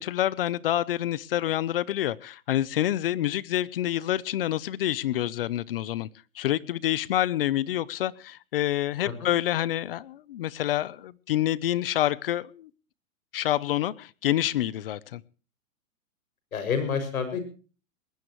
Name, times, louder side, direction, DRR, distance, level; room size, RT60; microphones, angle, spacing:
voice 1, 0.0-6.1 6.3-12.7 13.3-15.2, left 13 dB, 45° left, 0.7 m, -27 dB
voice 2, 16.5-17.4, left 6 dB, 90° left, 6.6 m, -29 dB
20.5 x 19.0 x 3.1 m
hypercardioid pair, 165°, 41 cm